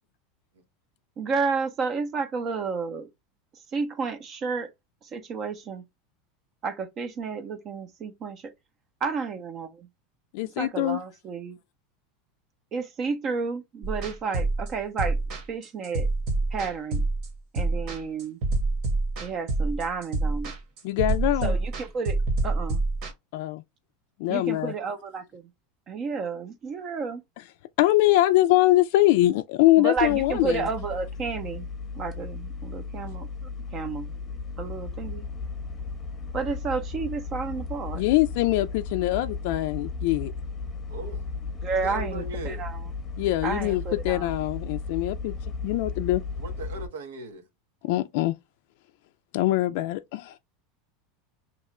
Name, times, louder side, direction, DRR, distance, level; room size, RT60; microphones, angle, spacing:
voice 1, 1.2-3.1 3.7-4.7 5.0-5.8 6.6-8.5 9.0-9.9 10.6-11.6 12.7-15.2 15.5-16.1 16.5-17.0 17.5-18.4 19.2-20.5 21.4-22.2 22.4-22.8 24.3-25.5 25.9-27.2 29.8-31.7 32.0-33.3 33.7-34.1 34.6-35.2 36.3-38.0 41.6-42.8 43.4-44.4, right 5 dB, 35° right, 0.6 m, -31 dB
voice 2, 10.3-11.0 20.8-21.6 23.3-23.6 24.2-24.7 27.8-30.6 37.9-40.3 43.2-45.3 45.6-46.2 47.8-48.3 49.3-50.3, left 16 dB, 65° left, 0.3 m, -23 dB
sound 1, 13.8-23.1, right 2 dB, 50° right, 1.1 m, -27 dB
sound 2, 30.0-46.9, left 4 dB, 20° left, 0.8 m, -35 dB
voice 3, 40.9-41.2 41.8-42.6 46.4-47.5, right 2 dB, 90° right, 1.0 m, -38 dB
2.9 x 2.3 x 4.2 m
supercardioid pair, 135°, 0 cm